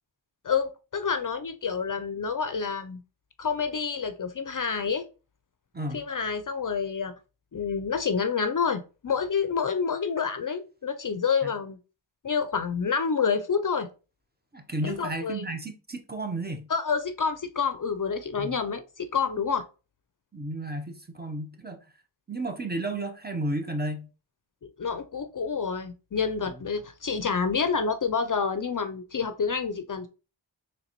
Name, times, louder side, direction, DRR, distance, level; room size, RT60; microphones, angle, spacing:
voice 1, 0.4-3.0 3.4-5.0 5.9-7.1 7.5-11.8 12.2-13.9 14.8-15.4 16.7-19.6 24.8-30.1, left 6 dB, 45° left, 0.5 m, -28 dB
voice 2, 14.5-16.7 18.4-18.5 20.3-21.8 22.3-24.1, right 1 dB, 20° right, 0.7 m, -33 dB
3.9 x 3.2 x 2.9 m
wide cardioid pair, 45°, 46 cm